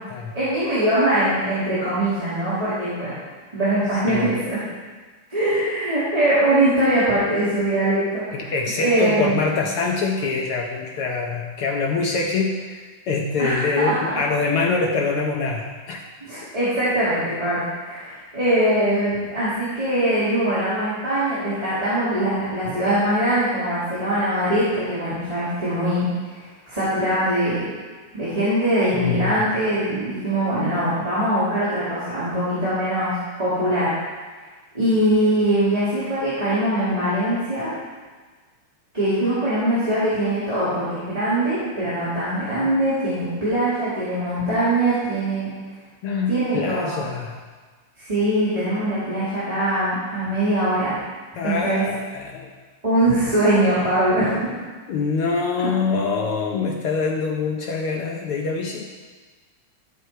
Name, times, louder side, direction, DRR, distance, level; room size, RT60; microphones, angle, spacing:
voice 1, 0.3-3.2 3.5-4.6 5.3-9.4 13.4-13.9 16.2-26.1 26.4-27.6 28.1-33.9 34.7-37.8 38.9-45.5 46.3-47.0 48.0-51.0 51.4-51.9 52.8-54.5 55.6-55.7, right 1 dB, 15° right, -13 dB, 2.5 m, -22 dB
voice 2, 8.3-16.0 28.9-29.4 46.0-47.4 51.3-52.5 54.9-58.9, left 4 dB, 75° left, 0 dB, 1.3 m, -24 dB
13.0 x 6.8 x 4.4 m, 1.4 s
omnidirectional pair, 3.5 m